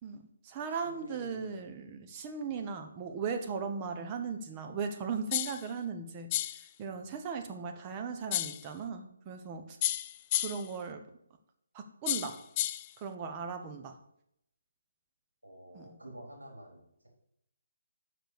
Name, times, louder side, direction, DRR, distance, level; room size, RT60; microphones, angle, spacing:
voice 1, 0.0-6.3 6.8-9.8 10.4-11.0 11.7-12.4 13.0-14.0 15.7-15.9, right 5 dB, 25° right, 5 dB, 1.1 m, -38 dB
voice 2, 0.7-1.6 6.9-7.1 15.4-17.1, right 1 dB, 85° right, -2 dB, 4.2 m, -50 dB
sound 1, 5.3-5.7 6.3-6.7 8.3-8.7 9.8-10.7 12.1-12.9, left 13 dB, 25° left, 0.3 m, -32 dB
6.6 x 6.6 x 6.6 m, 0.76 s
figure-of-eight pair, 145°, 0 cm